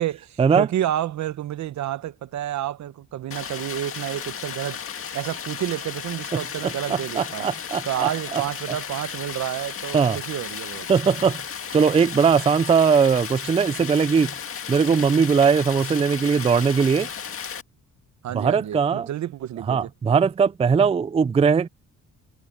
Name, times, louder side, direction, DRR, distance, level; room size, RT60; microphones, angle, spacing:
voice 1, 0.5-4.8 5.1-7.5 7.8-10.9 18.2-19.9, right 12 dB, 70° right, 1.0 m, -29 dB
Stream, 3.3-17.6, left 7 dB, 45° left, 2.0 m, -34 dB
voice 2, 6.6-8.4 9.9-10.2 10.9-11.4 11.7-14.3 14.7-17.1 18.3-19.1 19.7-21.7, right 6 dB, 20° right, 0.4 m, -20 dB
cardioid pair, 90°, 30 cm